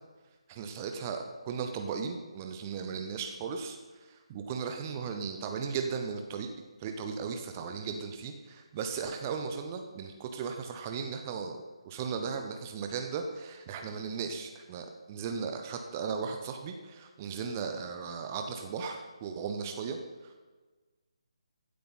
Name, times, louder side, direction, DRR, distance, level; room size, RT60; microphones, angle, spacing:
voice 1, 0.5-6.5 6.8-20.4, right 6 dB, 20° right, 5 dB, 0.8 m, -36 dB
15.0 x 8.5 x 4.1 m, 1.3 s
figure-of-eight pair, 145°, 3 cm